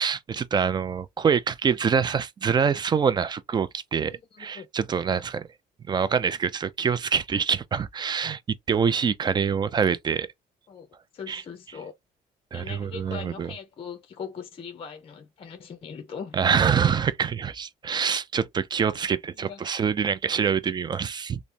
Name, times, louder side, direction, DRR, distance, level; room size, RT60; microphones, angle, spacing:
voice 1, 0.0-5.5 5.9-8.4 8.7-10.3 11.3-11.4 12.5-13.5 16.3-21.4, right 6 dB, 25° right, 0.3 m, -25 dB
voice 2, 4.1-4.7 8.7-8.8 10.7-10.9 11.1-11.9 12.5-16.4 19.4-19.7, left 6 dB, 35° left, 0.5 m, -40 dB
3.2 x 2.0 x 2.5 m
cardioid pair, 110°, 17 cm